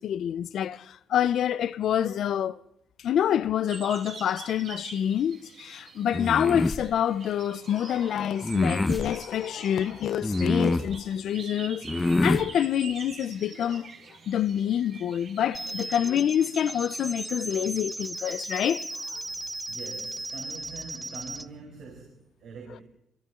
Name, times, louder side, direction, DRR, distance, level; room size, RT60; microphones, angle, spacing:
voice 1, 0.0-2.6 3.0-13.9 14.3-18.9 19.1-19.2, left 9 dB, 70° left, 0.7 m, -27 dB
sound 1, 3.7-17.3, right 5 dB, 55° right, 3.3 m, -46 dB
sound 2, 6.1-6.8 8.4-9.1 10.2-10.9 11.9-12.5, left 2 dB, 20° left, 1.1 m, -25 dB
sound 3, 15.5-21.5, right 2 dB, 15° right, 0.7 m, -36 dB
voice 2, 19.7-22.8, right 5 dB, 80° right, 6.0 m, -44 dB
27.0 x 25.0 x 3.9 m
cardioid pair, 90°, 0 cm